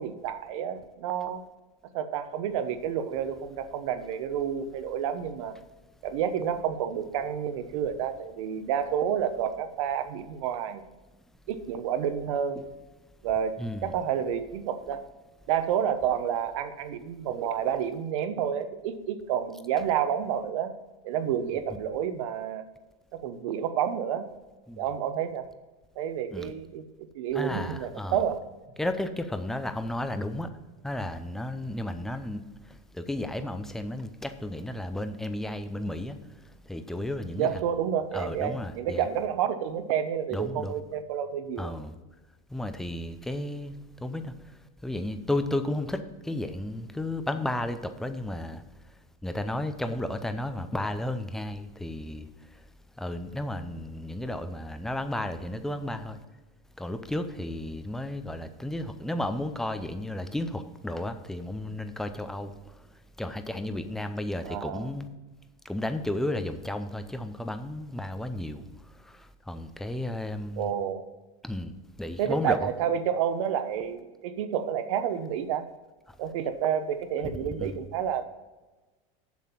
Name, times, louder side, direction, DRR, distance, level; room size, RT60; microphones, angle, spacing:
voice 1, 0.0-1.4 1.9-5.6 6.0-10.8 11.5-12.6 13.2-15.1 15.5-20.7 21.0-22.7 23.1-24.3 24.8-25.5 26.0-26.9 27.1-28.4 37.4-41.7 64.4-64.9 70.6-71.0 72.2-75.7 76.2-78.2, right 9 dB, 75° right, 9 dB, 1.0 m, -29 dB
voice 2, 13.6-13.9 24.7-24.8 26.3-26.5 27.3-28.2 28.8-30.5 30.8-32.4 32.9-36.2 36.7-37.6 38.1-39.1 40.3-40.8 41.6-41.9 42.5-43.7 44.0-44.3 44.8-48.6 49.2-52.3 53.0-56.2 56.8-62.5 63.2-65.1 65.7-68.6 69.1-69.2 69.5-70.7 71.4-71.7 72.0-72.7 77.6-77.8, left 1 dB, ahead, 9 dB, 0.5 m, -33 dB
7.4 x 7.3 x 5.9 m, 1.2 s
supercardioid pair, 160°, 17 cm